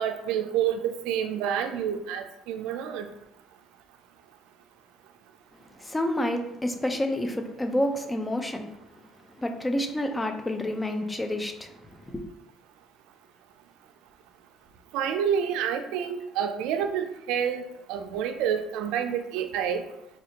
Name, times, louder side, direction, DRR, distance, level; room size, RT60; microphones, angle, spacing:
voice 1, 0.0-3.1 14.9-19.8, right 8 dB, 80° right, 0.3 m, -28 dB
voice 2, 5.8-8.7 9.4-11.7 12.1-12.2, left 1 dB, 15° left, 0.4 m, -29 dB
4.2 x 2.4 x 2.8 m
cardioid pair, 95°, 0 cm